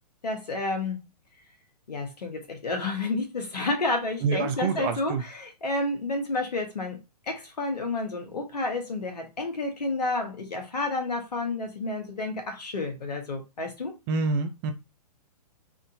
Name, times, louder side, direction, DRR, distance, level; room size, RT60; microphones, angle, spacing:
voice 1, 0.2-1.0 1.9-7.0 7.3-13.9, left 2 dB, 75° left, 1.4 m, -30 dB
voice 2, 4.2-5.2 14.1-14.7, right 4 dB, 35° right, 0.6 m, -27 dB
3.6 x 2.6 x 2.6 m
figure-of-eight pair, 120°, 21 cm